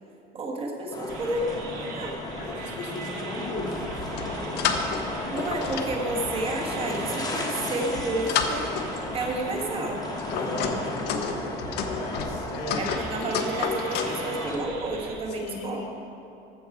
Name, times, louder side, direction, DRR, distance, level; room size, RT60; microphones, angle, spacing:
voice 1, 0.3-2.1 5.3-8.7 9.1-10.0 12.8-15.8, right 2 dB, 25° right, 1 dB, 1.3 m, -31 dB
sound 1, 0.9-14.6, left 2 dB, 20° left, 1.2 m, -34 dB
sound 2, 1.1-11.3 12.9-15.2, right 4 dB, 75° right, 1.9 m, -41 dB
voice 2, 2.4-4.9 10.3-13.0 15.3-15.9, left 2 dB, 70° left, -2 dB, 1.8 m, -36 dB
sound 3, 3.9-5.1 5.4-6.7 7.4-9.2 9.8-14.2, left 6 dB, 55° left, 0.9 m, -31 dB
14.5 x 6.3 x 4.8 m, 2.8 s
cardioid pair, 145°, 21 cm